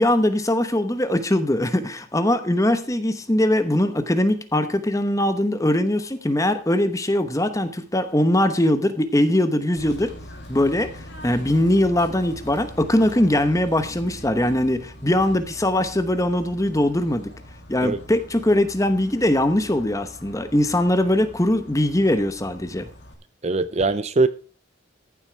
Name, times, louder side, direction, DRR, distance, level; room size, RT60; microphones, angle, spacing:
voice 1, 0.0-10.1 10.5-17.3 17.7-22.9, left 1 dB, 15° left, 0.9 m, -21 dB
Bird / Train, 9.8-23.1, equal, 55° left, 2.6 m, -42 dB
voice 2, 23.4-24.3, right 3 dB, 30° right, 0.5 m, -21 dB
14.5 x 7.5 x 4.7 m
head